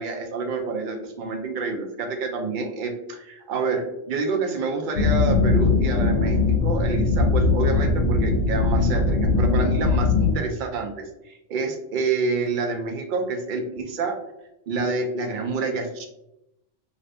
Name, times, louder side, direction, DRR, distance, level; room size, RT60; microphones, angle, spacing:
voice 1, 0.0-14.2 14.7-16.1, right 4 dB, 60° right, 3 dB, 0.5 m, -28 dB
sound 1, 4.9-10.3, left 3 dB, 70° left, 0.8 m, -20 dB
2.6 x 2.5 x 3.2 m, 0.86 s
omnidirectional pair, 1.3 m